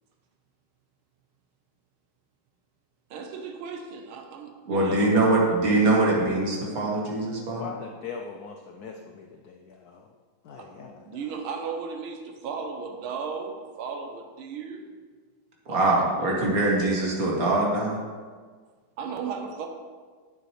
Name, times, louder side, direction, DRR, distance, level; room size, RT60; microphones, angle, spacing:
voice 1, 3.1-5.3 10.6-14.9 15.7-15.8 16.2-16.3 19.0-19.7, right 5 dB, 80° right, 4 dB, 1.6 m, -36 dB
voice 2, 4.7-7.7 15.7-18.0, right 2 dB, 45° right, -2 dB, 1.8 m, -23 dB
voice 3, 7.6-10.1 10.4-11.0, left 5 dB, 85° left, 3 dB, 0.8 m, -41 dB
9.0 x 7.5 x 3.2 m, 1.5 s
omnidirectional pair, 2.3 m